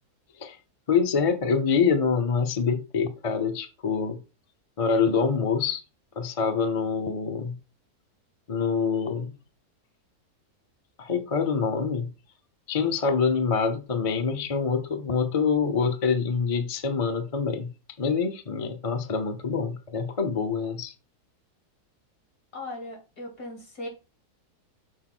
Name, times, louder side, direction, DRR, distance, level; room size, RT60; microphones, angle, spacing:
voice 1, 0.9-4.2 4.8-5.8 6.2-7.6 8.5-9.3 11.0-12.1 12.7-17.7 18.0-20.9, left 5 dB, 30° left, 0.7 m, -25 dB
voice 2, 22.5-23.9, left 1 dB, 75° left, 3.2 m, -38 dB
6.7 x 4.1 x 6.1 m
omnidirectional pair, 1.7 m